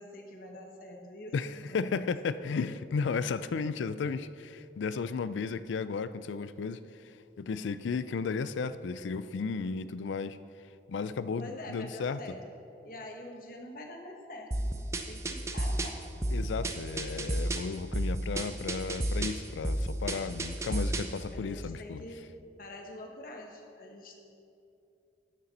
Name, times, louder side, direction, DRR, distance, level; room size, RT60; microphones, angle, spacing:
voice 1, 0.0-2.1 11.4-12.4 12.8-16.0 21.3-22.2 22.6-24.2, left 1 dB, 50° left, 1 dB, 1.2 m, -45 dB
voice 2, 1.3-6.8 7.4-10.4 10.9-12.2 16.3-22.0, left 5 dB, 85° left, 14 dB, 0.4 m, -34 dB
sound 1, 14.5-21.2, right 1 dB, 15° right, 0.5 m, -32 dB
12.5 x 6.7 x 4.2 m, 2.6 s
head